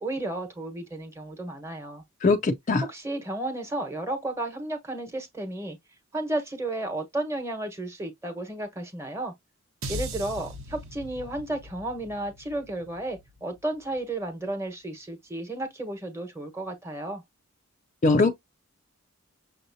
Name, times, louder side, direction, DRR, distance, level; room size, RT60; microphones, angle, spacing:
voice 1, 0.0-2.0 2.9-5.8 6.1-9.3 9.9-17.2, right 1 dB, 15° right, 1.1 m, -33 dB
voice 2, 2.2-2.8 18.0-18.3, left 3 dB, 35° left, 0.4 m, -21 dB
sound 1, 9.8-14.2, equal, 75° right, 1.0 m, -40 dB
6.3 x 2.7 x 2.7 m
head